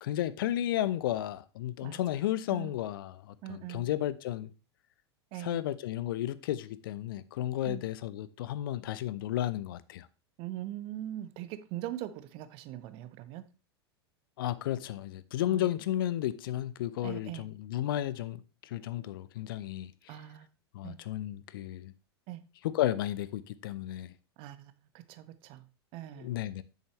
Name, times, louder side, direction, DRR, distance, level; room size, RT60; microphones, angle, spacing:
voice 1, 0.0-4.5 5.4-10.1 14.4-20.2 20.7-21.9 22.6-24.1 26.2-26.6, left 13 dB, 55° left, 0.5 m, -33 dB
voice 2, 3.4-3.9 5.3-5.6 7.7-7.8 10.4-13.4 15.5-15.7 17.0-17.5 20.1-20.5 20.8-21.0 22.3-22.4 24.4-25.6 25.9-26.3, right 13 dB, 40° right, 0.7 m, -41 dB
8.1 x 6.4 x 3.3 m
figure-of-eight pair, 85°, 14 cm